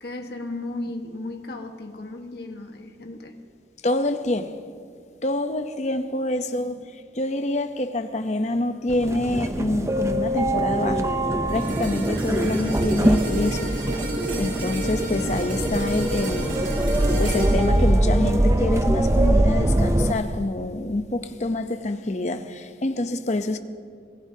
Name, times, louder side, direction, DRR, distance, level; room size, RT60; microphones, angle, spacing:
voice 1, 0.0-3.4 6.5-6.8, left 2 dB, 60° left, 1.4 m, -35 dB
voice 2, 3.8-4.5 5.2-11.1 11.5-13.8 14.4-16.7 17.2-23.6, left 2 dB, 40° left, 0.7 m, -26 dB
sound 1, 8.9-20.1, right 1 dB, 15° right, 0.5 m, -23 dB
sound 2, 11.5-19.8 20.3-20.5, right 1 dB, 80° right, 3.2 m, -32 dB
26.0 x 19.0 x 2.8 m
head